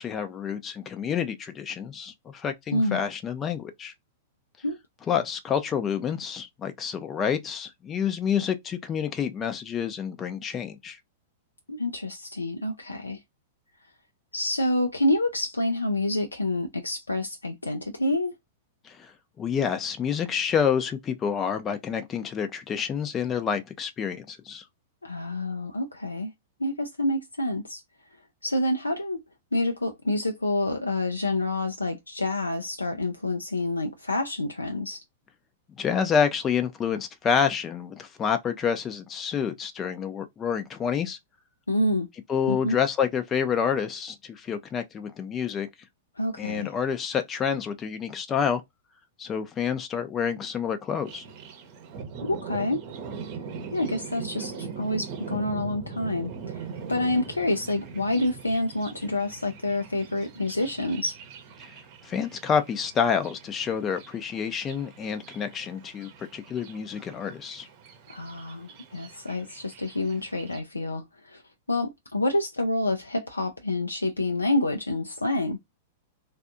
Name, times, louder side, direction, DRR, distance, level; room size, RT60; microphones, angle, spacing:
voice 1, 0.0-3.9 5.1-11.0 18.8-19.1 19.4-24.6 35.8-41.2 42.3-45.7 46.4-48.6 49.2-51.2 62.0-67.7, left 7 dB, 25° left, 0.4 m, -28 dB
voice 2, 2.7-3.0 4.6-4.8 11.7-13.2 14.3-18.3 25.0-26.3 26.6-27.8 28.4-29.2 29.5-35.0 41.7-42.1 42.5-42.8 46.2-46.7 52.2-52.8 53.7-61.2 68.1-71.4 71.7-75.6, left 1 dB, 90° left, 0.4 m, -28 dB
Thunder, 51.0-70.6, right 5 dB, 45° right, 0.8 m, -41 dB
3.3 x 2.3 x 2.5 m
figure-of-eight pair, 100°, 0 cm